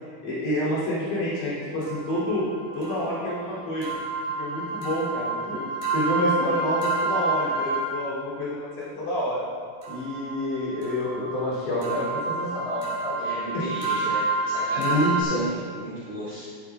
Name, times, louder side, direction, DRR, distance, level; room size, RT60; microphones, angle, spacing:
voice 1, 0.0-2.5 2.7-3.9 4.2-5.6 5.9-9.4 9.9-13.6 14.8-15.4, left 1 dB, 70° left, -9 dB, 5.3 m, -28 dB
sound 1, 1.8-8.2 9.8-15.2, right 3 dB, 70° right, 4.1 m, -29 dB
voice 2, 13.2-16.5, right 1 dB, 45° right, -11 dB, 3.0 m, -34 dB
13.5 x 12.5 x 2.4 m, 2.1 s
omnidirectional pair, 4.8 m